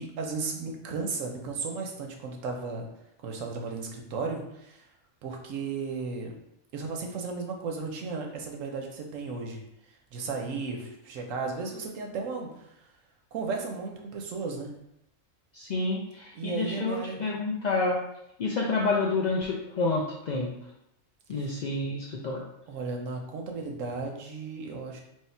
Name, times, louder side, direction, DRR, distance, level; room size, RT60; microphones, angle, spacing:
voice 1, 0.0-2.8 3.2-4.9 5.2-6.3 6.7-9.6 10.1-12.9 13.3-14.7 16.3-17.4 21.3-21.6 22.7-25.0, right 4 dB, 85° right, 2 dB, 1.1 m, -35 dB
voice 2, 15.5-18.0 18.4-20.5 21.3-22.4, left 3 dB, 70° left, -2 dB, 0.4 m, -29 dB
3.1 x 2.8 x 4.3 m, 0.80 s
omnidirectional pair, 1.3 m